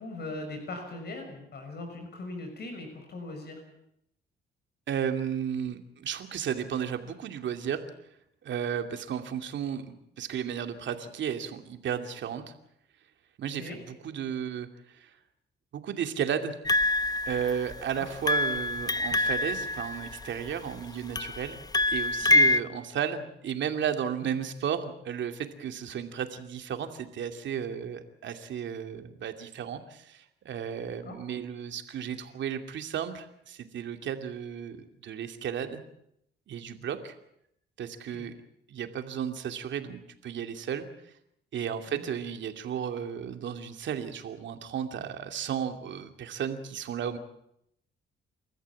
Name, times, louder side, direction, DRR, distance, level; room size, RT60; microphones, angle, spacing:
voice 1, 0.0-3.6 13.6-13.8 17.9-18.1 31.0-31.2 38.1-38.3 41.9-42.0, left 2 dB, 55° left, 4 dB, 6.1 m, -40 dB
voice 2, 4.9-7.8 8.4-12.5 13.4-14.7 14.9-15.1 15.7-16.5 17.2-35.8 36.5-37.1 37.8-38.4 38.7-40.9 41.5-47.2, right 8 dB, 70° right, 6 dB, 2.6 m, -34 dB
sound 1, 16.6-17.8 18.2-20.5 21.1-22.6, left 2 dB, 20° left, 0.8 m, -26 dB
29.0 x 14.0 x 8.4 m, 0.75 s
cardioid pair, 90°, 20 cm